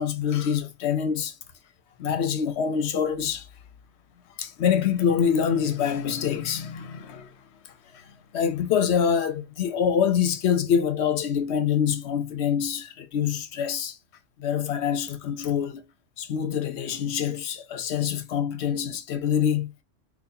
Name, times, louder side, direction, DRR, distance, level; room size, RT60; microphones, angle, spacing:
voice 1, 0.0-1.4 2.0-3.5 4.4-7.3 7.9-14.0 14.4-15.8 16.2-19.8, left 8 dB, 65° left, 0.9 m, -25 dB
3.9 x 2.4 x 2.6 m
omnidirectional pair, 1.3 m